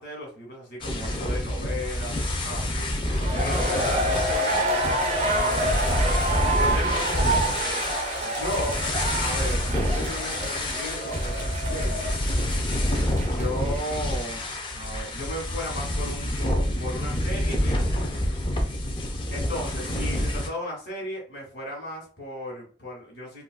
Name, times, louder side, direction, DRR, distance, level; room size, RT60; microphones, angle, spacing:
voice 1, 0.0-7.6 8.2-8.8 9.1-12.2 13.3-14.4 14.7-18.4 19.3-23.4, equal, 65° left, -1 dB, 1.5 m, -36 dB
sound 1, 0.8-20.5, left 1 dB, 30° left, 0.5 m, -27 dB
sound 2, 3.0-13.8 14.1-14.2, right 1 dB, 40° right, 0.6 m, -28 dB
3.7 x 2.4 x 2.2 m, 0.41 s
head